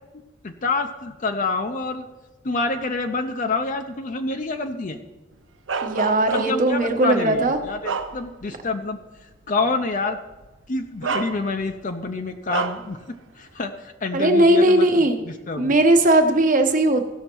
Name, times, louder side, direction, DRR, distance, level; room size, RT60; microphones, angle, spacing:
voice 1, 0.4-2.0 2.4-5.0 6.3-9.0 9.5-10.2 10.7-13.0 13.4-15.7, left 3 dB, 45° left, 6 dB, 0.6 m, -27 dB
Bark, 5.7-6.8 7.3-8.6 9.0-9.2 10.3-10.5 11.0-11.8 12.5-12.9, right 5 dB, 75° right, 0.6 m, -29 dB
voice 2, 5.8-7.6 14.1-15.2 15.6-17.1, right 1 dB, 45° right, 5 dB, 1.1 m, -18 dB
16.0 x 6.4 x 4.5 m, 1.1 s
head